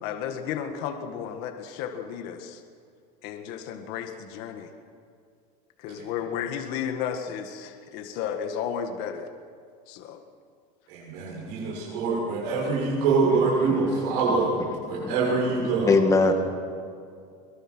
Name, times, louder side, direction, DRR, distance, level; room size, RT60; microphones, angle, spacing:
voice 1, 0.0-2.6 3.2-4.7 5.8-9.3 9.9-10.2, left 8 dB, 50° left, 1.7 m, -33 dB
voice 2, 10.9-14.5 14.8-15.9, right 4 dB, 70° right, 6.5 m, -25 dB
voice 3, 15.6-16.3, left 3 dB, 15° left, 2.0 m, -21 dB
23.0 x 22.5 x 6.2 m
cardioid pair, 175°, 21 cm